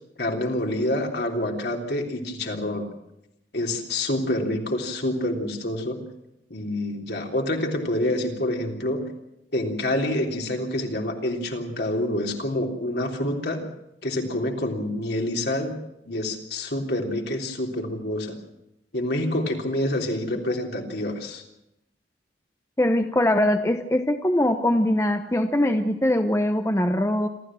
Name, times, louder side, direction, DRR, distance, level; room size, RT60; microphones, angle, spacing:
voice 1, 0.2-2.9 3.5-6.0 6.5-9.0 9.5-13.6 14.0-15.7 16.1-18.4 18.9-21.4, left 1 dB, 60° left, 2 dB, 3.5 m, -27 dB
voice 2, 22.8-27.3, left 1 dB, 15° left, 6 dB, 0.9 m, -22 dB
27.5 x 13.5 x 7.6 m, 0.86 s
head